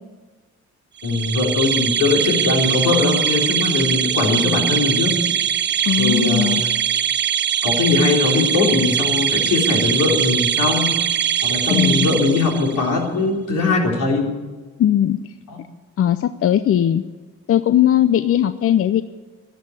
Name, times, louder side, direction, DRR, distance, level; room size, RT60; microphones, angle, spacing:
voice 1, 1.0-5.2 6.0-6.7 7.6-11.0 11.4-14.3 15.5-15.6, left 3 dB, 80° left, -1 dB, 3.8 m, -20 dB
sound 1, 1.0-12.9, right 9 dB, 35° right, 0.6 m, -21 dB
voice 2, 5.9-6.6 11.7-12.1 14.8-15.2 16.0-17.0 17.5-19.0, left 10 dB, 50° left, 12 dB, 0.6 m, -18 dB
12.5 x 11.0 x 9.8 m, 1.3 s
cardioid pair, 90°, 30 cm